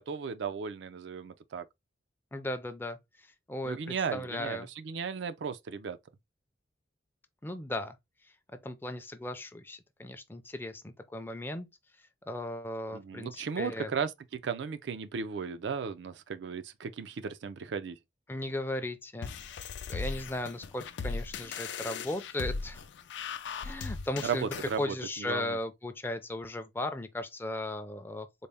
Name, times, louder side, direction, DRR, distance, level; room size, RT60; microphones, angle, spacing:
voice 1, 0.0-1.6 3.6-6.0 12.9-18.0 24.2-25.6, right 6 dB, 75° right, 0.4 m, -35 dB
voice 2, 2.3-3.0 3.5-4.7 7.4-8.0 8.6-11.7 12.3-13.9 18.3-19.3 19.9-22.8 23.6-24.5 24.8-28.3, left 1 dB, 10° left, 0.4 m, -36 dB
sound 1, 19.2-24.8, left 5 dB, 75° left, 0.4 m, -38 dB
4.0 x 2.0 x 3.3 m
head